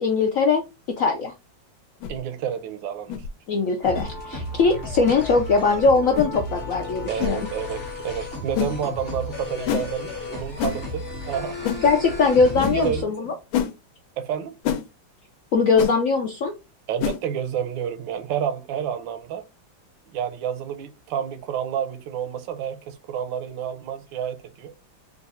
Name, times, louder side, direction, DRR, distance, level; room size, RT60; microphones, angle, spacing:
voice 1, 0.0-1.3 3.5-7.5 11.8-13.3 15.5-16.5, left 4 dB, 70° left, 0.7 m, -21 dB
sound 1, 2.0-2.2 3.1-3.3 4.0-4.1 5.0-5.2 6.1-6.3 7.2-7.4 8.6-8.8 9.7-9.9 10.6-10.8 11.6-11.8 12.6-12.8 13.5-13.7 14.6-14.8 15.8-15.9 17.0-17.2, left 9 dB, 85° left, 1.4 m, -26 dB
voice 2, 2.1-3.2 7.1-11.6 12.6-13.3 14.2-14.6 16.9-19.5 20.1-24.7, right 9 dB, 80° right, 1.3 m, -30 dB
sound 2, 3.8-13.0, left 2 dB, 35° left, 1.2 m, -34 dB
3.9 x 2.4 x 4.1 m
omnidirectional pair, 2.1 m